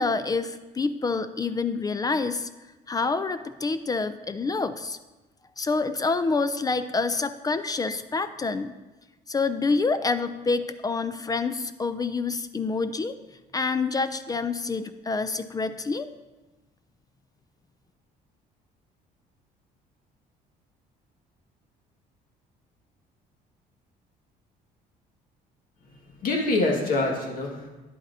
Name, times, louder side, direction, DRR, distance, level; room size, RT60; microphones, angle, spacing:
voice 1, 0.0-2.5 2.9-5.0 5.6-8.7 9.3-13.1 13.5-16.1, left 4 dB, 20° left, 12 dB, 0.3 m, -27 dB
voice 2, 25.9-27.7, left 2 dB, 55° left, 0 dB, 1.8 m, -26 dB
9.9 x 8.1 x 2.7 m, 1.1 s
cardioid pair, 110°, 17 cm